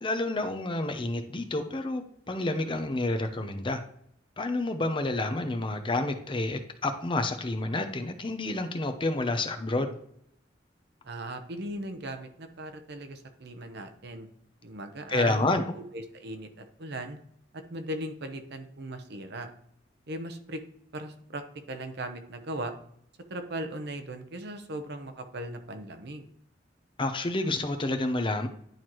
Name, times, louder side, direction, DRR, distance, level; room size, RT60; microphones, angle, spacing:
voice 1, 0.0-3.8 4.4-10.0 15.1-15.7 27.0-28.5, left 2 dB, 25° left, 7 dB, 0.7 m, -29 dB
voice 2, 11.0-14.3 14.6-15.6 15.9-17.2 17.5-19.5 20.1-20.6 20.9-22.7 23.3-26.3, right 1 dB, 60° right, 6 dB, 0.8 m, -38 dB
10.5 x 4.6 x 3.0 m, 0.69 s
head